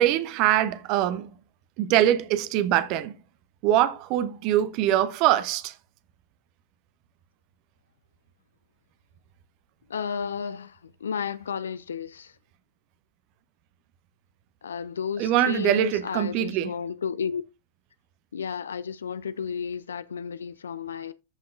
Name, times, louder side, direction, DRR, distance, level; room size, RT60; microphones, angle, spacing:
voice 1, 0.0-1.3 1.8-3.1 3.6-5.7 15.2-16.7, right 12 dB, 45° right, 0.8 m, -23 dB
voice 2, 9.9-12.4 14.6-17.4 18.3-21.1, left 7 dB, 70° left, 0.4 m, -32 dB
14.0 x 5.7 x 2.4 m
figure-of-eight pair, 90°, 0 cm